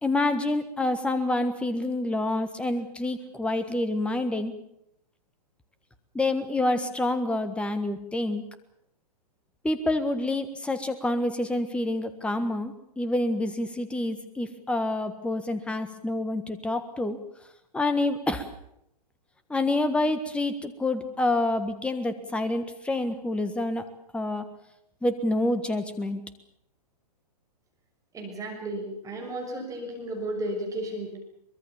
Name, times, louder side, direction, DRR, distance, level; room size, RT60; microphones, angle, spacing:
voice 1, 0.0-4.5 6.1-8.4 9.6-17.2 17.7-18.4 19.5-23.8 24.1-24.4 25.0-26.2, left 2 dB, 5° left, 10 dB, 1.5 m, -27 dB
voice 2, 28.1-31.2, right 1 dB, 15° right, 1 dB, 6.3 m, -33 dB
24.0 x 21.5 x 7.2 m, 0.77 s
figure-of-eight pair, 115°, 21 cm